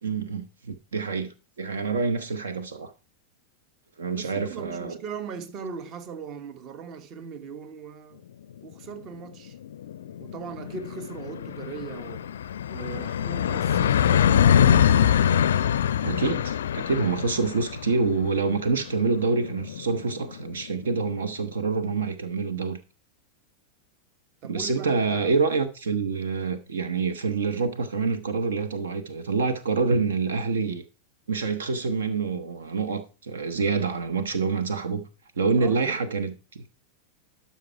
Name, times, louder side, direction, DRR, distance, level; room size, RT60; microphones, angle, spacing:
voice 1, 0.0-2.9 4.0-5.0 16.0-22.8 24.4-30.8 31.3-35.0 35.4-36.6, right 4 dB, 65° right, 1.0 m, -27 dB
voice 2, 4.1-8.2 8.6-9.6 10.2-12.3 12.7-15.3 24.4-25.3 35.6-36.0, right 6 dB, 35° right, 1.1 m, -39 dB
sound 1, 8.7-8.8 9.1-9.2 9.5-20.9, left 9 dB, 65° left, 0.4 m, -24 dB
12.5 x 5.7 x 4.6 m
figure-of-eight pair, 90°, 0 cm